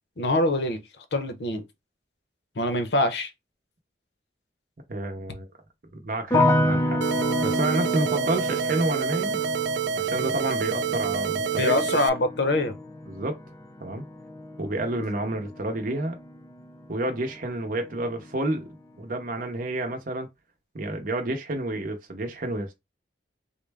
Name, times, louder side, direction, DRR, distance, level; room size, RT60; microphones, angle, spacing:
voice 1, 0.2-0.8 1.1-1.6 2.6-3.3 11.6-12.7, left 1 dB, 65° left, 0.7 m, -24 dB
voice 2, 4.9-5.5 5.9-7.0 7.4-9.4 10.0-11.7 13.1-13.4 13.8-14.0 14.6-16.2 16.9-18.7 19.0-20.3 20.7-22.7, right 2 dB, 50° right, 0.7 m, -29 dB
sound 1, 6.3-17.4 17.7-18.4, left 1 dB, 20° left, 0.5 m, -30 dB
sound 2, 7.0-12.1, right 7 dB, 75° right, 0.3 m, -28 dB
3.7 x 2.1 x 3.3 m
head